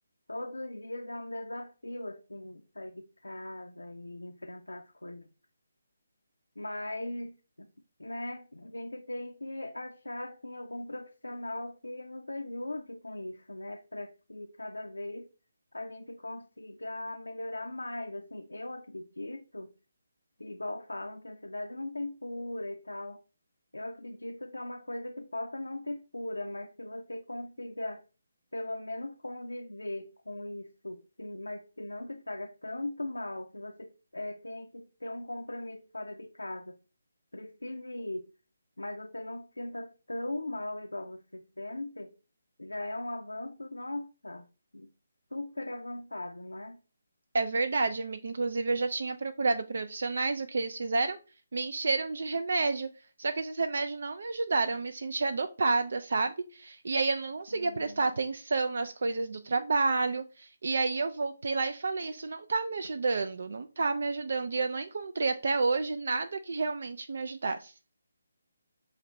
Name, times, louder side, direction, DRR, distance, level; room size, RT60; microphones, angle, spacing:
voice 1, 0.3-5.3 6.6-7.7 8.0-15.3 15.7-19.7 20.4-23.2 23.7-28.0 28.5-36.8 37.3-38.3 38.8-42.1 42.6-44.5 44.7-44.9 45.3-46.8 57.5-58.2, left 1 dB, 85° left, 0.4 m, -39 dB
voice 2, 47.3-51.2 51.5-52.9 53.2-67.7, right 3 dB, 60° right, 0.3 m, -30 dB
5.6 x 2.6 x 3.1 m
figure-of-eight pair, 145°, 0 cm